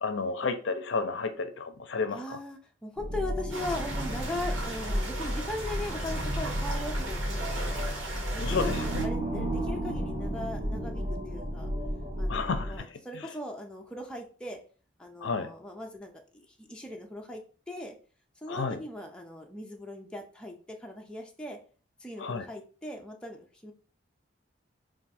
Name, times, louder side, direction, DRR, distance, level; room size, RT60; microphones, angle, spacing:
voice 1, 0.0-2.4 8.4-8.6 8.9-9.0 12.3-12.7 15.2-15.5 18.5-18.8 22.2-22.4, left 4 dB, 70° left, 8 dB, 0.5 m, -31 dB
voice 2, 2.1-7.9 8.3-11.7 12.2-14.6 15.0-18.0 18.4-21.6 22.0-23.7, left 1 dB, 5° left, 1 dB, 0.5 m, -39 dB
sound 1, 3.0-12.8, equal, 30° right, 1.3 m, -32 dB
sound 2, 3.5-9.1, right 2 dB, 75° right, 1.4 m, -38 dB
3.5 x 2.5 x 4.1 m, 0.39 s
head